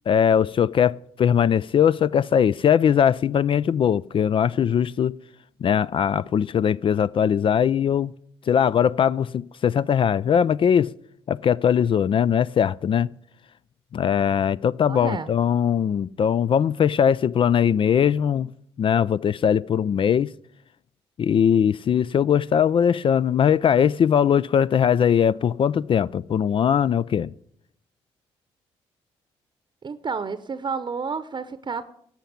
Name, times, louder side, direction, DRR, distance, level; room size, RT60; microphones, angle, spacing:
voice 1, 0.1-5.1 5.6-8.1 8.5-10.9 11.3-13.1 13.9-18.5 18.8-20.3 21.2-27.3, left 8 dB, 50° left, 0.4 m, -20 dB
voice 2, 14.8-15.3 29.8-31.8, right 5 dB, 40° right, 0.8 m, -30 dB
11.5 x 5.8 x 8.7 m
supercardioid pair, 50°, 12 cm